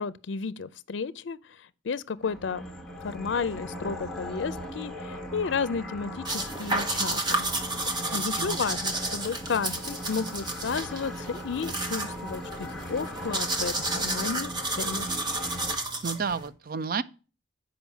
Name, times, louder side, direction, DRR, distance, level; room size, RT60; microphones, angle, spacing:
voice 1, 0.0-2.7 3.0-7.5 7.9-15.1, left 5 dB, 70° left, 0.5 m, -32 dB
sound 1, 2.2-15.8, equal, 5° left, 1.1 m, -39 dB
sound 2, 6.2-16.5, right 2 dB, 25° right, 1.0 m, -31 dB
voice 2, 8.0-8.6 16.0-17.0, right 5 dB, 50° right, 0.5 m, -32 dB
7.1 x 5.0 x 7.0 m
head